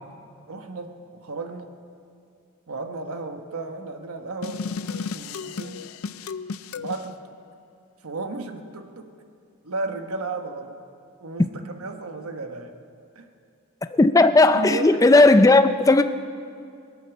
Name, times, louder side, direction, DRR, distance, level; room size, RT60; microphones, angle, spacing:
voice 1, 0.5-1.7 2.7-5.9 6.8-7.2 8.0-9.1 9.6-10.8 11.2-12.8 13.1-13.3 14.5-15.1, right 3 dB, 85° right, 6 dB, 1.1 m, -34 dB
sound 1, 4.4-7.1, left 5 dB, 75° left, 0.5 m, -33 dB
voice 2, 13.9-16.0, left 2 dB, 15° left, 9 dB, 0.4 m, -15 dB
23.0 x 8.3 x 7.0 m, 2.4 s
head